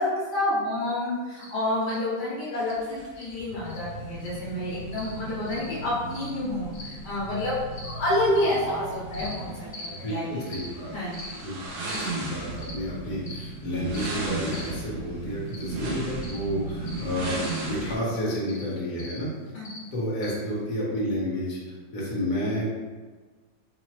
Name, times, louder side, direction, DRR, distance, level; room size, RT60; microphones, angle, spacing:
voice 1, 0.0-7.6 7.8-10.5 10.9-11.3 19.5-19.9, left 1 dB, 70° left, -7 dB, 1.4 m, -29 dB
sound 1, 1.4-1.5 1.9-2.0 2.6-2.8 3.2-3.3 3.6-3.8 4.2-4.4 4.9-5.1 5.5-5.7 6.1-6.3 6.7-6.9 7.7-7.9 8.3-8.6 9.1-9.3 9.7-9.9 10.5-10.7 11.1-11.3 11.9-12.1 12.6-12.8 13.2-13.5 13.9-14.1 14.5-14.7 15.5-15.7 16.2-16.4 16.8-17.0 17.4-17.6 18.4-18.6 19.0-19.2 19.6-19.8 20.2-20.3, left 1 dB, 85° left, 0.4 m, -42 dB
sound 2, 2.6-17.9, right 2 dB, 70° right, 1.2 m, -36 dB
voice 2, 9.9-10.9 11.3-11.6 12.1-19.3 19.9-21.6 21.9-22.6, equal, 55° left, -5 dB, 1.4 m, -30 dB
4.0 x 2.8 x 3.1 m, 1.4 s
omnidirectional pair, 1.9 m